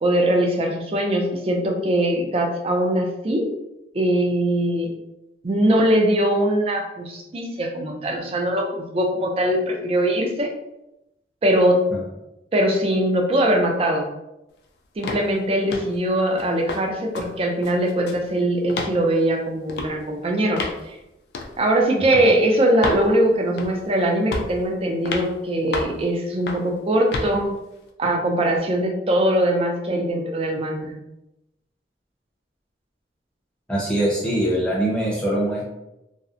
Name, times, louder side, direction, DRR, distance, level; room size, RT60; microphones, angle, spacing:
voice 1, 0.0-3.5 3.9-4.9 5.4-10.5 11.4-11.8 12.5-14.1 15.0-21.0 21.6-27.5 28.0-30.9, right 1 dB, 30° right, 1 dB, 0.4 m, -21 dB
sound 1, 15.0-15.3 15.7-16.0 16.4-16.8 17.1-17.3 17.6-18.3 18.7-19.0 19.7-19.9 20.6-20.8 21.3-21.5 22.1-22.3 22.8-23.0 23.6-23.9 24.3-24.6 25.1-25.3 25.7-26.0 26.5-26.7 27.1-27.3, left 3 dB, 65° left, 0.3 m, -29 dB
voice 2, 33.7-35.7, right 1 dB, 5° left, -5 dB, 0.6 m, -23 dB
2.7 x 2.0 x 2.4 m, 0.92 s
head